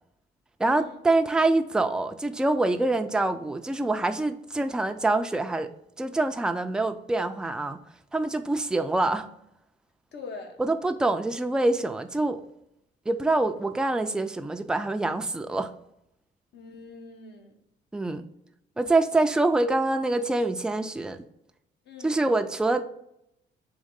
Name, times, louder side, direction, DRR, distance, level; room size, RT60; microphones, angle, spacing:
voice 1, 0.6-5.7 6.0-7.8 8.1-9.3 10.6-12.4 13.1-15.7 17.9-18.2 18.8-21.2 22.0-22.8, right 2 dB, 5° right, 8 dB, 0.3 m, -25 dB
voice 2, 10.1-10.6 16.5-17.6 21.8-22.2, left 4 dB, 60° left, 4 dB, 0.9 m, -43 dB
3.7 x 3.1 x 3.6 m, 0.77 s
cardioid pair, 90°, 20 cm